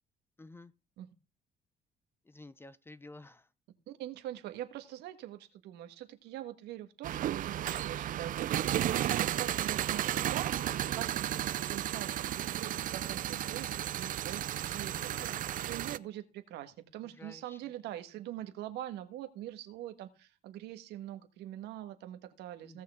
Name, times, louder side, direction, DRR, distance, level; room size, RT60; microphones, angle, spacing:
voice 1, 0.4-0.7 2.3-3.4 14.6-15.4 17.2-17.6 22.6-22.8, left 2 dB, 15° left, 0.7 m, -52 dB
voice 2, 3.9-10.5 10.9-22.8, right 13 dB, 85° right, 1.5 m, -44 dB
sound 1, 7.0-16.0, right 12 dB, 50° right, 0.5 m, -33 dB
sound 2, 11.7-11.9 13.0-13.1 13.9-14.1 14.6-15.0 15.6-15.9 17.2-17.3, left 5 dB, 50° left, 7.2 m, -71 dB
16.5 x 6.6 x 3.7 m
cardioid pair, 110°, 17 cm